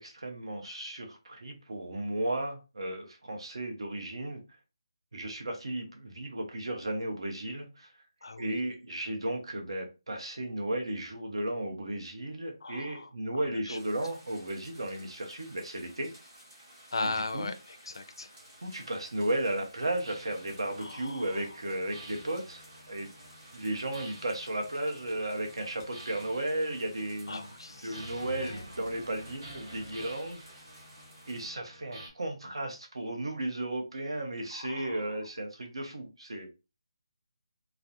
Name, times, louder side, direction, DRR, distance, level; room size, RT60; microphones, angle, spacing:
voice 1, 0.0-4.4 5.1-7.9 8.4-16.1 17.0-17.5 18.6-22.6 22.9-23.1 23.5-27.4 27.8-30.4 31.3-36.5, right 1 dB, 70° right, 3 dB, 0.7 m, -34 dB
voice 2, 8.2-8.7 12.6-13.8 16.9-18.3 20.8-21.4 27.3-28.6 34.5-35.1, left 3 dB, 55° left, 9 dB, 0.3 m, -39 dB
sound 1, 13.7-31.5, right 1 dB, 10° right, 0.5 m, -55 dB
sound 2, 20.0-32.1, right 1 dB, 50° right, 1.1 m, -49 dB
2.4 x 2.0 x 2.7 m, 0.28 s
hypercardioid pair, 180°, 3 cm